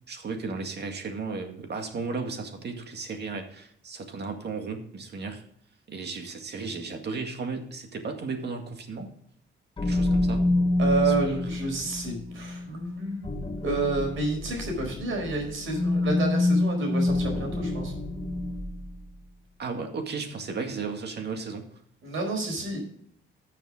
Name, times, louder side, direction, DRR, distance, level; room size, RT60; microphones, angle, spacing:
voice 1, 0.1-5.4 5.9-9.1 9.8-10.5 11.0-11.4 19.6-21.8, right 4 dB, 55° right, 4 dB, 2.1 m, -35 dB
sound 1, 9.8-18.9, left 2 dB, 25° left, 1.4 m, -27 dB
voice 2, 10.8-13.3 13.6-17.9 22.0-22.8, right 3 dB, 70° right, 2 dB, 4.7 m, -29 dB
13.5 x 7.1 x 3.7 m, 0.66 s
cardioid pair, 95°, 21 cm